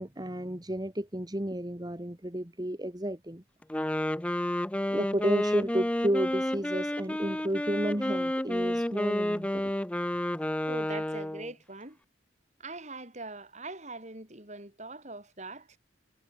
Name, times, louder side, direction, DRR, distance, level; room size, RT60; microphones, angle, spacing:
voice 1, 0.0-3.4 4.9-9.7, right 1 dB, 20° right, 1.6 m, -32 dB
Wind instrument woodwind instrument, 3.6-11.5, left 1 dB, 5° left, 0.5 m, -30 dB
voice 2, 10.7-12.0 12.6-15.8, right 2 dB, 35° right, 5.6 m, -42 dB
head